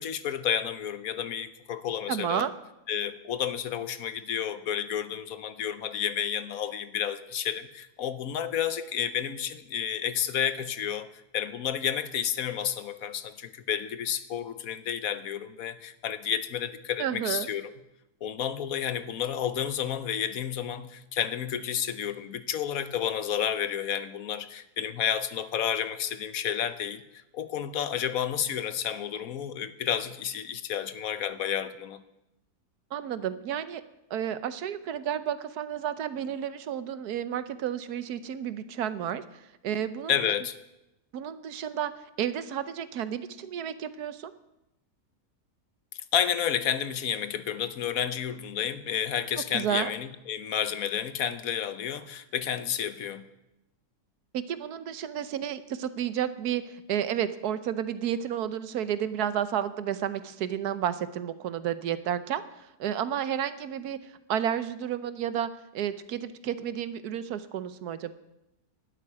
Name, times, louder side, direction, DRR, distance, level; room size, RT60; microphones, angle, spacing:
voice 1, 0.0-2.5 2.9-11.1 11.3-17.7 18.2-27.0 27.3-32.0 40.1-40.6 46.1-53.2, left 9 dB, 70° left, 13 dB, 1.2 m, -31 dB
voice 2, 2.1-2.5 17.0-17.5 32.9-33.8 34.1-40.3 41.1-41.9 42.2-44.3 49.5-49.9 54.3-68.1, right 9 dB, 85° right, 13 dB, 1.4 m, -31 dB
12.0 x 8.6 x 10.0 m, 0.90 s
omnidirectional pair, 1.6 m